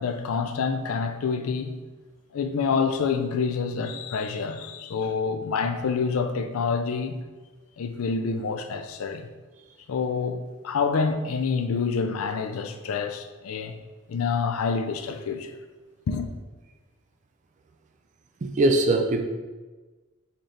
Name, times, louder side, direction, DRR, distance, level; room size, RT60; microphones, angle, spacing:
voice 1, 0.0-1.8 2.3-7.2 7.8-9.3 9.9-13.8 14.1-15.5 16.1-16.3, left 5 dB, 75° left, 0.4 m, -27 dB
voice 2, 18.4-19.2, right 2 dB, 35° right, 0.3 m, -21 dB
4.3 x 3.7 x 3.3 m
head